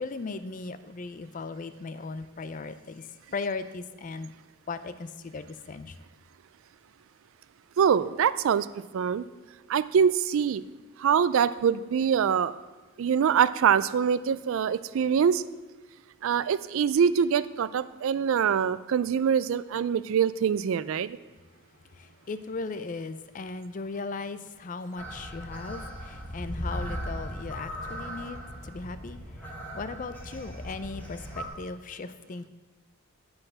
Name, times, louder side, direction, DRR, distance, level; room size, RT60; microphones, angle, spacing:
voice 1, 0.0-4.3 4.7-6.0 22.0-32.5, left 4 dB, 35° left, 12 dB, 0.4 m, -37 dB
voice 2, 7.8-8.7 8.9-9.2 9.7-10.6 11.0-12.5 13.0-15.4 16.2-21.2, right 7 dB, 65° right, 16 dB, 0.3 m, -24 dB
sound 1, 25.0-31.5, equal, 10° left, 1.2 m, -38 dB
9.7 x 4.8 x 6.2 m, 1.2 s
head